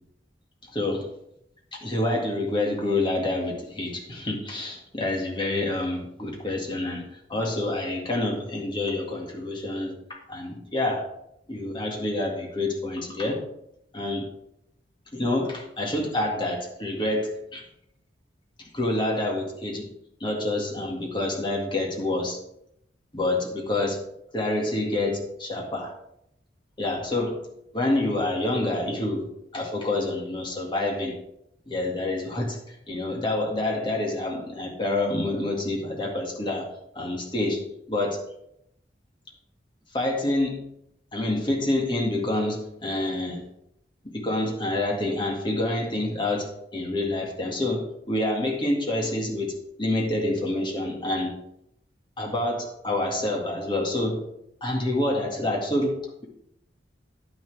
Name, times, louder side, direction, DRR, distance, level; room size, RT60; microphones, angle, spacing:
voice 1, 0.7-1.1 1.7-11.1 11.5-13.5 13.9-14.3 15.1-17.6 18.6-19.9 20.2-22.4 23.1-24.0 24.3-25.9 26.8-27.4 27.7-29.3 29.5-31.2 31.7-32.6 32.9-36.7 37.0-37.6 37.9-38.2 39.9-40.7 41.1-43.5 44.0-51.4 52.2-54.2 54.6-56.2, left 2 dB, 25° left, 0 dB, 2.0 m, -27 dB
10.5 x 9.6 x 3.5 m, 0.78 s
head